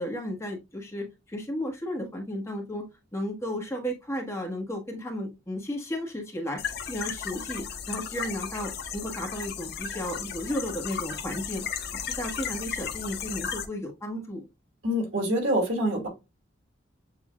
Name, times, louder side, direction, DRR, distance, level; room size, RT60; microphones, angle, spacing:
voice 1, 0.0-2.9 3.1-11.7 12.0-14.5, equal, 15° left, 1.3 m, -34 dB
sound 1, 6.6-13.7, left 7 dB, 60° left, 0.7 m, -35 dB
voice 2, 14.8-16.1, equal, 85° right, 2.5 m, -25 dB
7.6 x 2.6 x 2.3 m
head